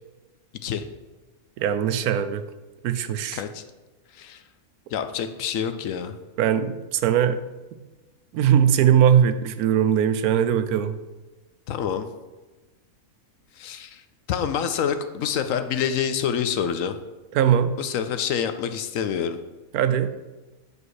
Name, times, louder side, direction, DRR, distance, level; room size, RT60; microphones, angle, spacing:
voice 1, 1.6-2.4 2.8-3.4 6.4-7.4 8.3-11.0 17.3-17.7 19.7-20.1, right 9 dB, 90° right, 11 dB, 1.1 m, -20 dB
voice 2, 3.3-3.6 4.1-4.4 4.9-6.1 11.7-12.1 13.6-14.0 14.3-16.9 17.8-19.4, left 8 dB, 70° left, 9 dB, 1.0 m, -27 dB
8.3 x 5.0 x 4.8 m, 1.2 s
omnidirectional pair, 1.5 m